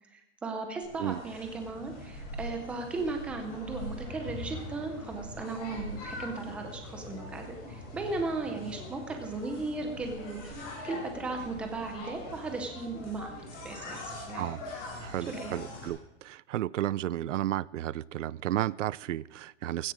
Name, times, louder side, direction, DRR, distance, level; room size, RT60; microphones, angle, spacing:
voice 1, 0.1-13.4 13.6-14.5 15.3-15.6, right 3 dB, 5° right, 4 dB, 0.5 m, -36 dB
sound 1, 0.8-15.9, left 2 dB, 25° left, 7.1 m, -42 dB
voice 2, 15.0-19.9, right 13 dB, 85° right, 23 dB, 0.6 m, -33 dB
16.0 x 13.5 x 5.0 m, 0.89 s
hypercardioid pair, 170°, 36 cm